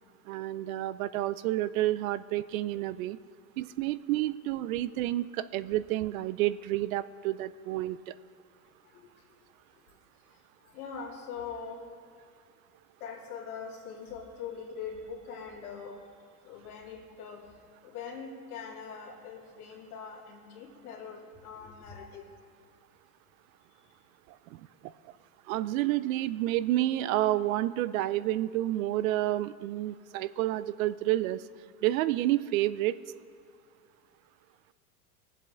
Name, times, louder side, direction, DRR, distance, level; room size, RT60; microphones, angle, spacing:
voice 1, 0.3-3.2 3.6-8.1 24.5-24.6 25.5-31.4 31.8-33.0, right 15 dB, 70° right, 16 dB, 0.5 m, -29 dB
voice 2, 8.8-9.2 9.7-9.8 10.2-10.4 10.6-11.9 13.0-16.0 16.4-17.6 17.8-22.3, left 6 dB, 80° left, -2 dB, 2.7 m, -42 dB
18.5 x 7.7 x 3.7 m, 2.3 s
hypercardioid pair, 110°, 44 cm